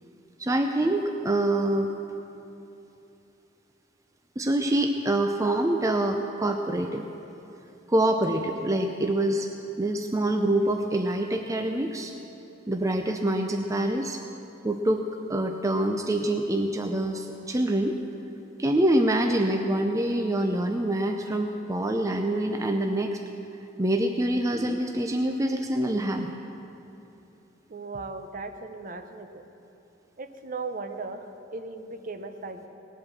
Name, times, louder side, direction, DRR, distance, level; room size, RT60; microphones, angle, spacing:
voice 1, 0.4-1.9 4.4-7.1 7.9-9.5 9.8-12.1 12.7-14.2 14.6-18.0 18.6-23.2 23.8-26.3, right 1 dB, 15° right, 4 dB, 0.5 m, -25 dB
voice 2, 27.7-29.4 30.2-32.7, right 3 dB, 45° right, 8 dB, 0.8 m, -37 dB
18.5 x 8.0 x 7.1 m, 2.9 s
head